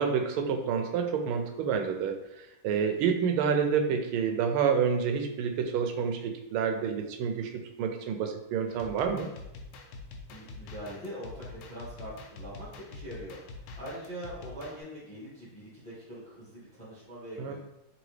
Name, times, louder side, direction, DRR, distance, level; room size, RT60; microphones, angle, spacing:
voice 1, 0.0-9.3 17.4-17.5, right 6 dB, 80° right, 5 dB, 1.4 m, -28 dB
sound 1, 8.7-14.8, left 3 dB, 85° left, 1.5 m, -46 dB
voice 2, 10.3-17.5, equal, 5° left, -7 dB, 1.1 m, -43 dB
3.9 x 3.4 x 3.1 m, 0.89 s
omnidirectional pair, 2.4 m